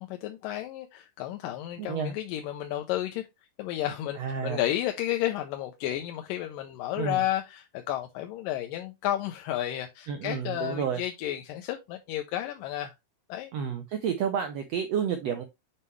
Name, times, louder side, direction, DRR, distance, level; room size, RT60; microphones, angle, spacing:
voice 1, 0.0-3.3 3.6-12.9 13.3-13.5, left 13 dB, 90° left, 2.4 m, -32 dB
voice 2, 1.8-2.1 4.2-4.6 7.0-7.2 10.1-11.0 13.5-15.5, right 7 dB, 75° right, 1.5 m, -30 dB
7.3 x 5.4 x 3.1 m
omnidirectional pair, 3.8 m